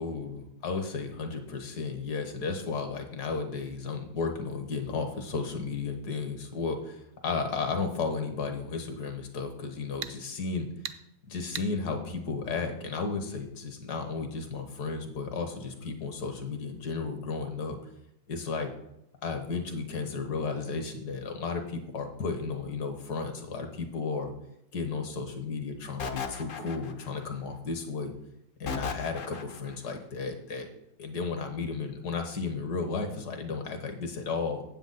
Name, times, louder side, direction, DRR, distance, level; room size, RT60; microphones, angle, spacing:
voice 1, 0.0-10.7 11.3-17.8 18.3-18.7 19.2-24.3 24.7-28.1 28.6-30.7 31.0-34.6, left 4 dB, 70° left, 5 dB, 1.7 m, -33 dB
sound 1, 8.8-8.9 10.0-10.2 10.8-11.0 11.5-11.7, right 9 dB, 75° right, 0.7 m, -37 dB
sound 2, 26.0-27.2 28.7-29.8, left 5 dB, 85° left, 0.4 m, -36 dB
9.0 x 7.8 x 4.0 m, 0.80 s
omnidirectional pair, 1.9 m